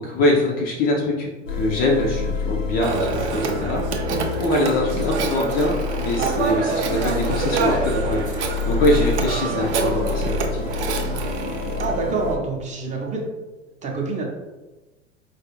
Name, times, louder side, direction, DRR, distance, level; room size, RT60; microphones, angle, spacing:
voice 1, 0.0-4.0 4.3-10.7, left 1 dB, 25° left, -1 dB, 0.4 m, -23 dB
sound 1, 1.5-12.4, left 4 dB, 85° left, 0.6 m, -28 dB
Telephone, 2.8-11.9, right 4 dB, 65° right, 0.6 m, -27 dB
voice 2, 11.8-13.3 13.8-14.2, right 3 dB, 20° right, -1 dB, 0.7 m, -26 dB
4.4 x 2.4 x 3.0 m, 1.2 s
figure-of-eight pair, 80°, 37 cm